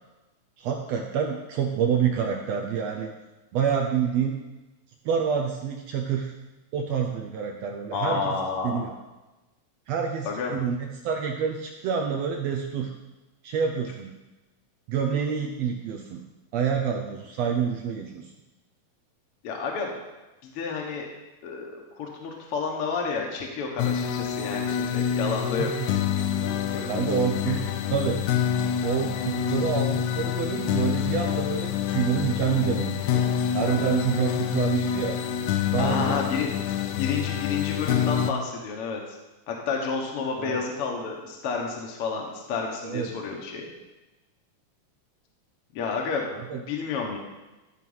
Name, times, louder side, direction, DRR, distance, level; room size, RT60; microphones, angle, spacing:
voice 1, 0.6-3.1 3.5-4.3 5.0-6.3 6.7-8.4 8.6-8.9 9.9-12.9 13.4-14.1 14.9-16.2 16.5-18.3 25.6-25.9 26.9-27.6 27.9-28.2 28.8-33.3 33.5-35.2 35.7-36.2 40.4-40.6 42.8-43.1 46.3-46.6, right 7 dB, 75° right, 2 dB, 1.6 m, -27 dB
voice 2, 7.9-8.8 10.3-10.5 19.4-19.9 20.4-21.1 21.4-25.7 26.7-26.9 27.5-27.6 35.8-36.5 36.9-39.0 39.5-43.7 45.7-46.3 46.5-47.2, left 5 dB, 55° left, 0 dB, 1.8 m, -30 dB
sound 1, 23.8-38.3, left 9 dB, 80° left, 1.9 m, -27 dB
12.5 x 4.6 x 5.5 m, 1.1 s
omnidirectional pair, 3.6 m